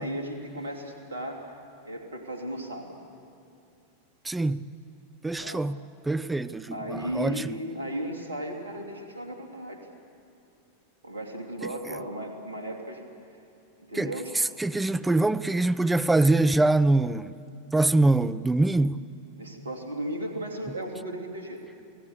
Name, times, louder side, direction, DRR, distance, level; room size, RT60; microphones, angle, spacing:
voice 1, 0.0-1.6 1.8-3.0 5.4-5.6 6.7-9.9 11.0-13.0 13.8-14.3 19.4-21.6, right 1 dB, 70° right, 3.0 m, -35 dB
voice 2, 4.2-4.6 5.2-5.8 6.0-7.6 13.9-17.3 17.7-19.0, right 2 dB, 10° right, 0.6 m, -24 dB
28.5 x 18.5 x 6.8 m
figure-of-eight pair, 90°, 0 cm